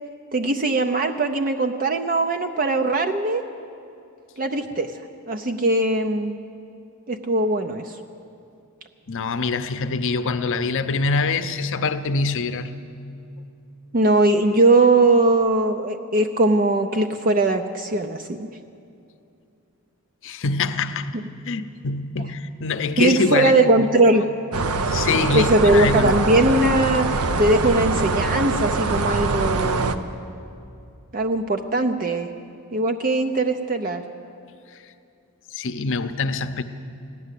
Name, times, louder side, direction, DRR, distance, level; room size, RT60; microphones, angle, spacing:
voice 1, 0.3-3.4 4.4-4.9 5.3-6.4 7.1-7.9 13.9-18.5 21.1-21.2 23.0-24.2 25.3-30.1 31.1-32.3 32.7-34.0, right 2 dB, 40° right, 6 dB, 0.6 m, -20 dB
voice 2, 9.1-12.7 20.2-21.2 21.4-23.5 23.8-23.9 24.9-26.1 35.5-36.6, left 4 dB, 60° left, 10 dB, 0.7 m, -24 dB
sound 1, 24.5-29.9, right 3 dB, 75° right, 0.7 m, -23 dB
16.0 x 11.0 x 8.3 m, 2.6 s
head